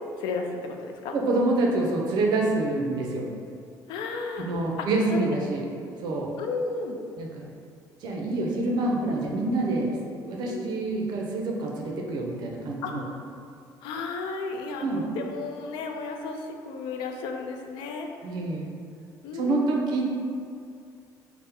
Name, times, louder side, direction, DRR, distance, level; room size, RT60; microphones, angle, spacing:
voice 1, 0.2-1.1 3.9-4.5 4.8-5.3 6.4-7.0 10.5-10.7 12.8-13.2 13.8-18.1 19.2-19.8, left 4 dB, 85° left, 4 dB, 0.4 m, -33 dB
voice 2, 1.1-3.3 4.4-5.6 6.0-6.3 7.2-7.5 8.0-10.0 10.3-13.0 14.8-15.0 18.2-18.7 19.3-20.0, right 2 dB, 65° right, -1 dB, 0.5 m, -26 dB
3.4 x 2.1 x 4.2 m, 2.4 s
cardioid pair, 135°, 8 cm